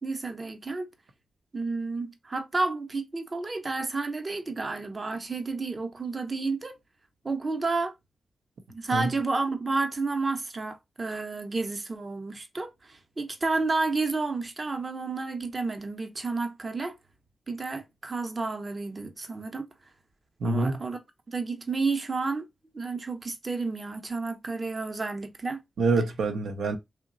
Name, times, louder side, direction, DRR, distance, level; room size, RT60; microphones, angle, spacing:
voice 1, 0.0-0.9 1.5-6.8 7.2-7.9 8.7-17.0 17.5-19.7 20.4-21.0 21.3-22.5 22.7-25.6, right 3 dB, 35° right, 0.7 m, -31 dB
voice 2, 20.4-20.8 25.8-26.8, right 3 dB, 85° right, 0.7 m, -26 dB
3.0 x 2.2 x 3.8 m
cardioid pair, 60°, 0 cm